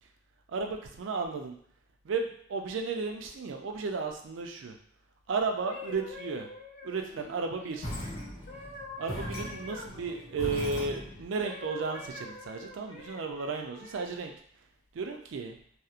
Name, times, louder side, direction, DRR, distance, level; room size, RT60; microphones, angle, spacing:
voice 1, 0.5-1.5 2.0-4.8 5.3-6.5 6.8-7.9 9.0-14.3 14.9-15.6, right 4 dB, 65° right, 4 dB, 0.4 m, -34 dB
sound 1, 5.6-11.0 11.4-14.3 15.0-15.2, left 2 dB, 35° left, 0.4 m, -46 dB
sound 2, 7.8-11.3, equal, 80° left, 0.8 m, -39 dB
2.8 x 2.0 x 2.4 m, 0.62 s
head